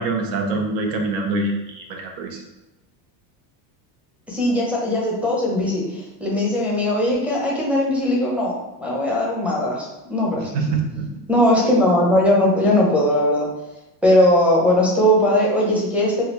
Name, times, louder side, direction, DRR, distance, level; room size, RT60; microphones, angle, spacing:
voice 1, 0.0-2.4 10.5-11.1, right 3 dB, 85° right, 2 dB, 0.8 m, -24 dB
voice 2, 4.3-10.4 11.3-13.5 14.0-16.2, left 1 dB, 5° right, -4 dB, 0.5 m, -19 dB
3.4 x 2.4 x 3.0 m, 1.0 s
cardioid pair, 135°, 48 cm